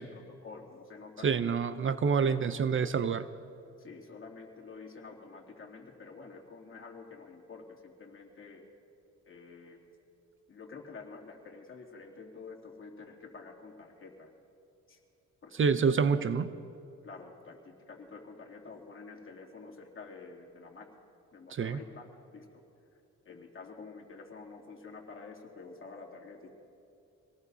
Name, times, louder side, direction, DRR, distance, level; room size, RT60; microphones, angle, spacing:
voice 1, 0.0-1.5 2.3-2.6 3.8-8.6 9.3-9.8 10.5-14.3 14.9-15.0 15.4-15.8 17.0-20.9 21.3-22.1 22.3-22.6 22.9-26.5, left 4 dB, 45° left, -1 dB, 2.7 m, -49 dB
voice 2, 1.2-3.3 15.6-16.5 21.5-21.8, right 6 dB, 45° right, 12 dB, 0.6 m, -27 dB
26.0 x 19.0 x 2.7 m, 2.7 s
cardioid pair, 105°, 29 cm